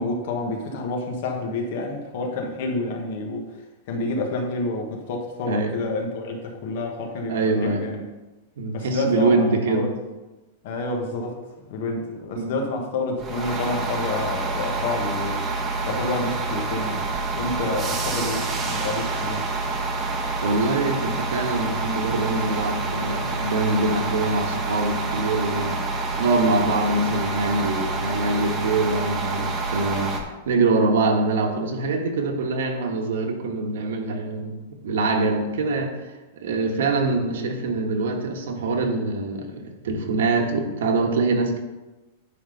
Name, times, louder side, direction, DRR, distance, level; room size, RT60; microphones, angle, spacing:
voice 1, 0.0-3.5 3.9-7.3 7.6-8.0 8.7-9.9 10.6-11.4 11.7-15.5 15.8-19.5, left 2 dB, 50° left, 2 dB, 1.4 m, -29 dB
voice 2, 7.3-7.9 8.6-9.8 12.3-12.6 20.4-34.6 34.8-35.9 36.3-41.6, right 3 dB, 75° right, 3 dB, 1.5 m, -24 dB
sound 1, 13.2-30.2, right 3 dB, 15° right, 1.0 m, -27 dB
10.0 x 3.9 x 5.4 m, 1.1 s
supercardioid pair, 175°, 0 cm